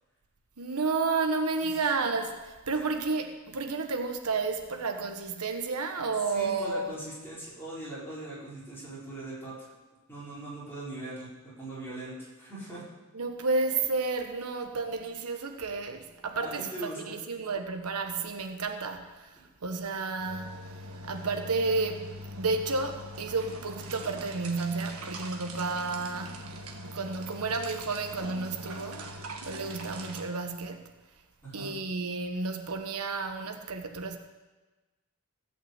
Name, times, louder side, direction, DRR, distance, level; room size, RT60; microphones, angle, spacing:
voice 1, 0.6-6.9 13.1-20.6 21.1-26.5 26.9-29.1 29.5-30.9 31.5-34.2, right 4 dB, 85° right, 1.1 m, -31 dB
voice 2, 6.3-9.7 10.1-12.8 16.4-17.2 31.4-31.7, right 2 dB, 10° left, 5.0 m, -40 dB
sound 1, 20.2-30.2, right 1 dB, 70° right, 1.6 m, -42 dB
16.0 x 5.8 x 8.0 m
head